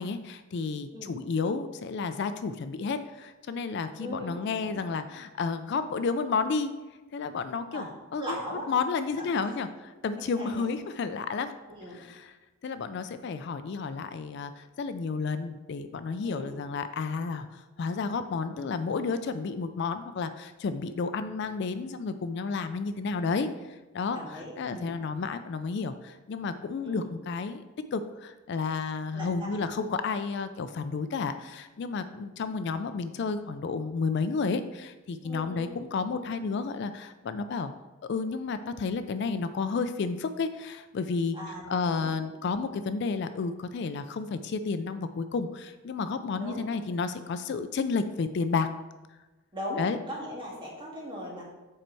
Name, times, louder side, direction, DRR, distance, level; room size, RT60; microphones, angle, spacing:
voice 1, 0.0-6.7 7.1-7.9 8.1-8.2 8.7-11.5 11.9-12.3 12.6-27.6 27.9-37.7 38.1-41.4 41.7-48.7 49.8-50.0, left 4 dB, 55° left, 10 dB, 0.3 m, -31 dB
voice 2, 3.9-4.8 7.7-7.9 8.2-8.7 9.2-9.3 10.4-10.6 11.7-12.1 16.2-16.6 24.1-24.9 26.8-27.1 29.1-29.6 35.2-35.7 41.3-42.1 46.4-46.6 49.5-49.8 50.1-51.4, equal, 25° right, -4 dB, 1.9 m, -39 dB
7.7 x 4.4 x 4.6 m, 1.1 s
head